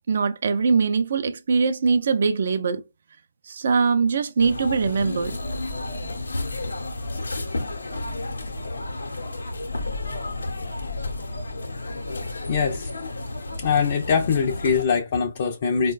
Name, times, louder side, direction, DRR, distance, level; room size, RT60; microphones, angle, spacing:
voice 1, 0.1-2.8 3.4-5.4, right 5 dB, 55° right, 0.4 m, -22 dB
sound 1, 4.4-14.8, left 2 dB, 80° left, 0.7 m, -31 dB
voice 2, 12.5-12.9 13.6-15.9, left 6 dB, 40° left, 0.4 m, -22 dB
4.3 x 2.1 x 2.2 m
figure-of-eight pair, 150°, 0 cm